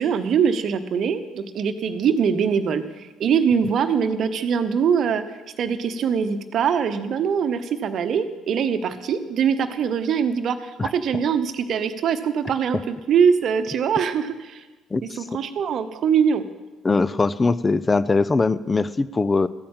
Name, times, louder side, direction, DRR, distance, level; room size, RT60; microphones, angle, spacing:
voice 1, 0.0-14.6 15.2-16.4, right 7 dB, 55° right, 11 dB, 0.9 m, -23 dB
voice 2, 14.9-15.2 16.8-19.5, left 3 dB, 25° left, 16 dB, 0.6 m, -21 dB
14.0 x 8.6 x 7.4 m, 1.2 s
figure-of-eight pair, 50°, 0 cm